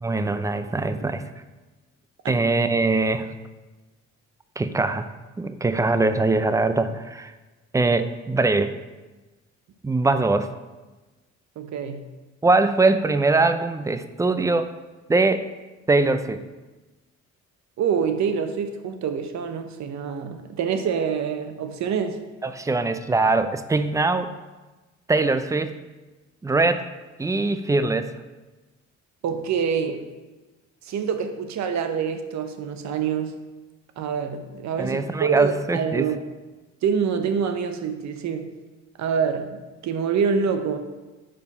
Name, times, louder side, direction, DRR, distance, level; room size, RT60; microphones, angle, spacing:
voice 1, 0.0-1.2 2.3-3.3 4.6-5.1 5.4-7.3 7.7-8.7 9.8-10.5 12.4-14.7 15.1-15.5 15.9-16.4 22.4-24.3 25.1-25.7 26.4-26.9 27.2-28.1 34.8-36.1, right 3 dB, 10° right, 11 dB, 0.3 m, -22 dB
voice 2, 11.6-12.1 17.8-22.2 29.2-30.1 30.8-33.3 34.0-36.2 36.8-38.5 39.0-39.6 39.8-40.8, right 6 dB, 65° right, 7 dB, 0.8 m, -26 dB
5.1 x 4.5 x 5.4 m, 1.2 s
cardioid pair, 90°, 30 cm